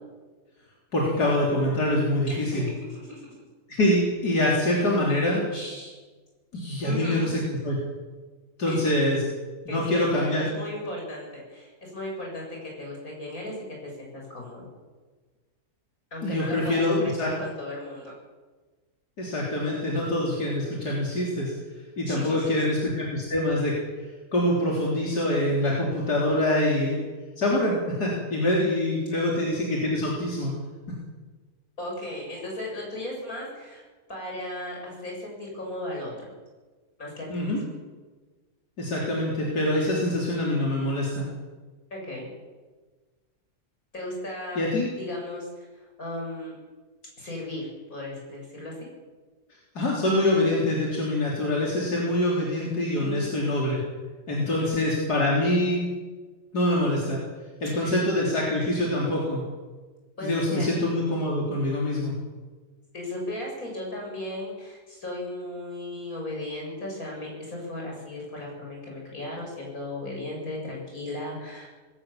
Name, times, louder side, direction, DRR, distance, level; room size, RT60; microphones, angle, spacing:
voice 1, 0.9-2.7 3.7-5.4 6.5-7.8 8.6-9.2 9.7-10.4 16.2-17.3 19.2-21.5 22.0-23.7 24.3-27.0 27.4-30.5 37.3-37.6 38.8-41.3 44.6-44.9 49.7-53.8 54.3-55.8 56.5-57.2 57.6-59.4 60.2-62.1, left 1 dB, 90° left, -4 dB, 4.3 m, -25 dB
voice 2, 2.3-3.2 5.5-6.0 6.8-7.3 8.6-9.0 9.7-13.6 13.8-14.7 16.1-18.1 22.1-22.6 31.8-36.3 37.0-37.6 41.9-42.3 43.9-44.7 45.0-46.6 47.2-48.9 53.0-53.3 54.5-54.8 57.8-57.9 60.2-60.7 62.9-71.7, left 1 dB, 60° left, -2 dB, 8.1 m, -36 dB
20.0 x 18.0 x 7.4 m, 1.3 s
omnidirectional pair, 1.7 m